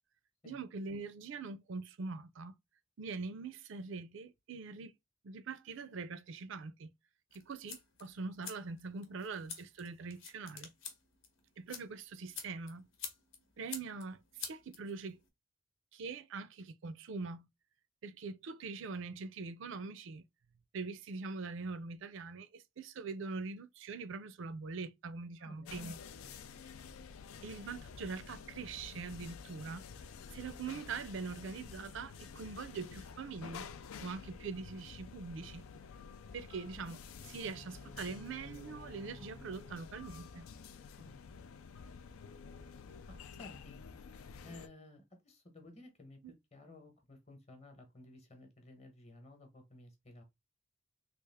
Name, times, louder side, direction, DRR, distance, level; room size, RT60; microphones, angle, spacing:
voice 1, 0.4-2.5 3.0-4.9 5.2-6.9 7.3-10.7 11.6-12.9 13.6-15.2 15.9-17.5 18.0-20.2 20.7-26.0 27.4-30.0 30.3-33.7 34.0-35.6 36.3-40.4, right 4 dB, 60° right, 0.4 m, -43 dB
sound 1, 7.3-15.3, left 7 dB, 65° left, 0.9 m, -49 dB
voice 2, 25.4-26.4 41.0-41.2 43.1-43.8 44.4-46.2 46.5-50.2, left 2 dB, 30° left, 0.9 m, -55 dB
sound 2, 25.7-44.7, left 6 dB, 80° left, 0.4 m, -50 dB
sound 3, 37.1-41.2, left 1 dB, 10° left, 0.4 m, -57 dB
3.3 x 2.4 x 3.4 m
head